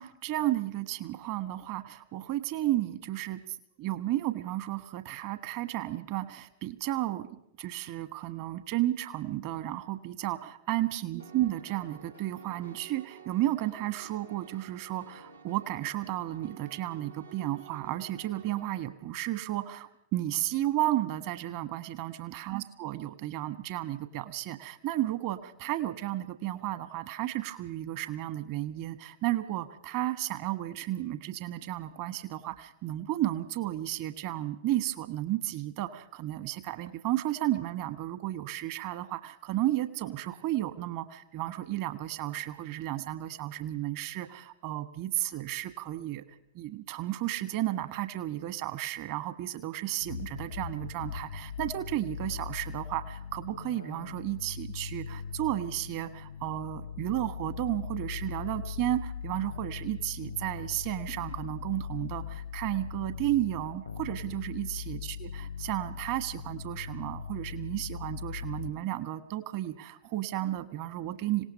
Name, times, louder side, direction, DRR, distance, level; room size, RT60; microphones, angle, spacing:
voice 1, 0.0-46.2 46.5-71.5, right 14 dB, 45° right, 11 dB, 1.3 m, -33 dB
Piano, 11.2-18.8, right 6 dB, 80° right, 1.5 m, -51 dB
sound 1, 50.0-68.7, left 7 dB, 75° left, 0.8 m, -40 dB
26.0 x 18.0 x 5.5 m, 0.75 s
figure-of-eight pair, 90°, 0 cm